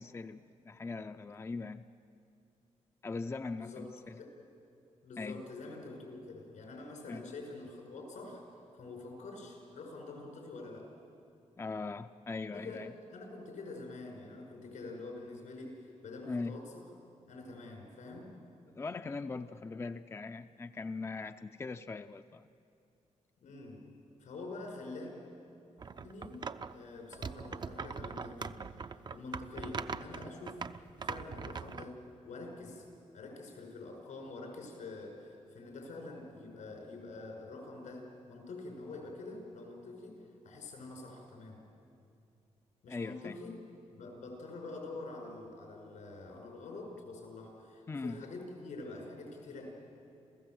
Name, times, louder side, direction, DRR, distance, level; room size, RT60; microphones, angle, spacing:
voice 1, 0.0-1.8 3.0-4.2 5.2-5.4 7.1-7.3 11.6-12.9 16.2-16.6 18.7-22.5 42.9-43.3 47.9-48.3, left 3 dB, 20° left, 9 dB, 0.5 m, -40 dB
voice 2, 5.0-8.4 8.7-10.9 12.5-12.8 13.1-16.6 17.3-18.3 23.4-23.8 24.2-25.1 26.0-26.4 26.7-28.6 29.1-30.6 31.0-32.0 32.2-32.8 33.1-40.2 40.4-41.6 42.8-43.5 43.9-49.7, left 2 dB, 90° left, 1 dB, 6.3 m, -46 dB
sound 1, 25.8-26.7 27.1-31.9, right 5 dB, 35° right, 0.6 m, -41 dB
28.5 x 15.5 x 7.8 m, 2.6 s
wide cardioid pair, 120°, 12 cm